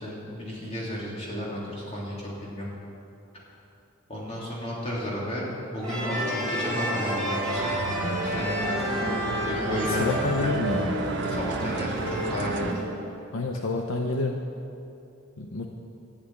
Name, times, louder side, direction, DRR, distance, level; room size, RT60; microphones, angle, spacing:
voice 1, 0.0-2.7 4.1-5.5 5.7-7.8 8.2-8.7 9.4-10.1 10.4-10.6 11.3-12.7, equal, 30° left, -5 dB, 3.3 m, -33 dB
sound 1, 5.8-12.8, equal, 5° left, 3.1 m, -29 dB
sound 2, 7.5-12.7, right 4 dB, 55° right, 0.5 m, -34 dB
voice 2, 10.0-10.9 13.3-14.4 15.4-15.7, left 2 dB, 70° left, 3 dB, 0.8 m, -28 dB
11.5 x 8.5 x 9.6 m, 2.8 s
head